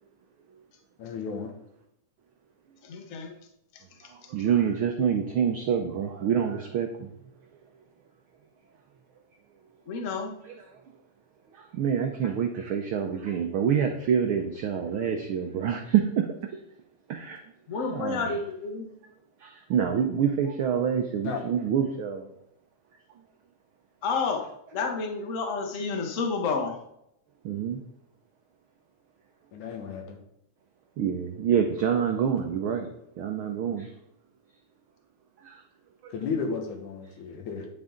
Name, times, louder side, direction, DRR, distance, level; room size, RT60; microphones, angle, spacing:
voice 1, 1.0-1.5 21.2-21.4 29.5-30.2 36.1-37.7, left 5 dB, 80° left, 3 dB, 2.9 m, -33 dB
voice 2, 2.8-3.3 9.9-10.3 17.7-18.9 24.0-24.5 24.7-26.8, left 4 dB, 55° left, 3 dB, 0.8 m, -30 dB
voice 3, 4.3-7.1 10.4-10.5 11.5-16.3 17.1-17.4 17.9-18.3 19.4-22.3 27.4-27.8 31.0-32.9 33.2-33.9 35.4-35.6, right 8 dB, 85° right, 4 dB, 1.1 m, -26 dB
10.0 x 7.9 x 3.8 m, 0.78 s
omnidirectional pair, 3.4 m